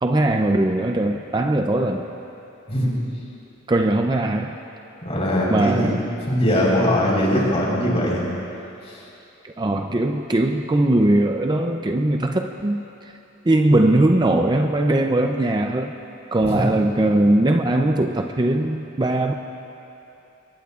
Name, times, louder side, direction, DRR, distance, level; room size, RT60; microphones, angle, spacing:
voice 1, 0.0-2.1 3.7-4.6 5.5-6.0 9.4-12.8 13.5-15.9 16.3-19.3, right 1 dB, 20° right, 4 dB, 0.5 m, -20 dB
voice 2, 5.0-5.9 6.3-8.2 16.4-16.6, equal, 30° left, -4 dB, 4.1 m, -20 dB
25.0 x 22.0 x 2.4 m, 2.9 s
head